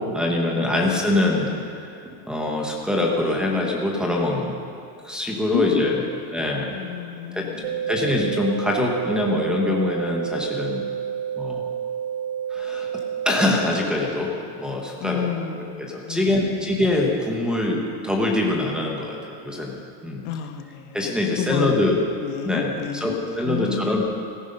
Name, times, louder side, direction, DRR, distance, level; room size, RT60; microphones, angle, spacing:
voice 1, 0.0-1.5 2.3-4.5 5.0-6.0 6.3-6.7 7.3-7.5 7.9-10.8 11.4-11.7 12.5-12.9 13.2-15.2 15.5-20.2 20.9-22.0 22.4-24.0, left 2 dB, ahead, -3 dB, 1.3 m, -24 dB
voice 2, 5.5-5.9 6.7-8.0 15.0-16.6 20.2-21.9 22.2-23.2 23.4-24.0, left 9 dB, 65° left, 6 dB, 1.3 m, -31 dB
sound 1, 7.6-13.6, right 8 dB, 65° right, 1.2 m, -29 dB
16.5 x 14.5 x 5.4 m, 2.6 s
supercardioid pair, 165°, 45 cm